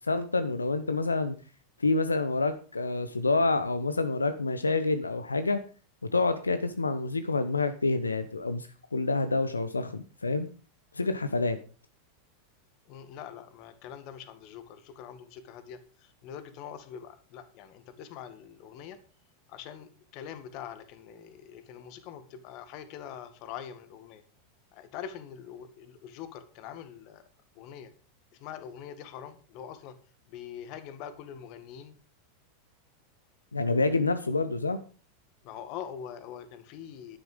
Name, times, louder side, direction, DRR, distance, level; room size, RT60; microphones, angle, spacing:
voice 1, 0.1-1.3 1.8-5.6 6.1-10.5 10.9-11.6 33.5-34.8, left 3 dB, 85° left, 10 dB, 1.0 m, -27 dB
voice 2, 12.9-19.0 19.5-24.2 24.7-27.2 27.6-27.9 28.3-30.0 30.3-32.0 35.4-37.2, left 9 dB, 50° left, 11 dB, 2.0 m, -44 dB
11.5 x 10.5 x 5.1 m, 0.37 s
figure-of-eight pair, 90°, 0 cm